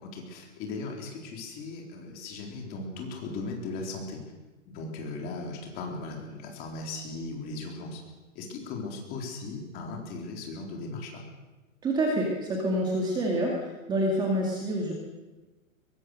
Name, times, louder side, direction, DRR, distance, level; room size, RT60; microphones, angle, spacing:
voice 1, 0.0-4.2 4.7-8.0 8.3-11.2, left 3 dB, 20° left, 1 dB, 3.9 m, -37 dB
voice 2, 11.8-14.9, right 1 dB, 10° right, -1 dB, 2.2 m, -27 dB
22.5 x 21.5 x 6.6 m, 1.1 s
hypercardioid pair, 170°, 41 cm